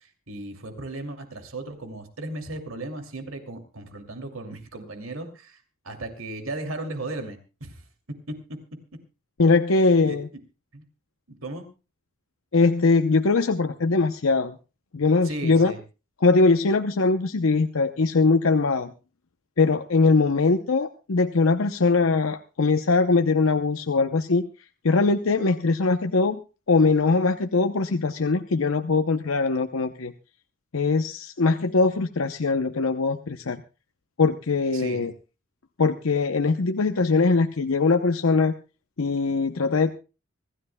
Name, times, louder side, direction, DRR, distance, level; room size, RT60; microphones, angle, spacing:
voice 1, 0.0-7.9 8.3-8.6 10.0-10.4 10.7-10.8 11.3-11.7 15.2-15.8 34.7-35.1, right 2 dB, 90° right, 6 dB, 2.6 m, -36 dB
voice 2, 9.4-10.3 12.5-14.6 14.9-15.7 16.2-18.9 19.6-24.5 24.8-26.4 26.7-30.1 30.7-33.6 34.2-35.1 35.8-38.5 39.0-39.9, left 3 dB, 85° left, 7 dB, 0.7 m, -21 dB
25.0 x 14.5 x 2.2 m, 0.32 s
head